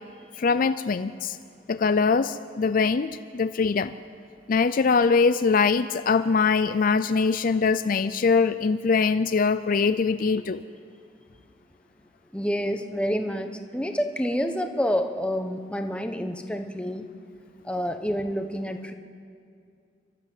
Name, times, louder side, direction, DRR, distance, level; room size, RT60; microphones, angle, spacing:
voice 1, 0.4-1.4 1.7-3.9 4.5-10.6, left 5 dB, 50° left, 12 dB, 0.4 m, -22 dB
voice 2, 12.3-17.1 17.6-18.9, equal, 5° left, 6 dB, 1.0 m, -28 dB
29.5 x 12.5 x 7.7 m, 2.3 s
head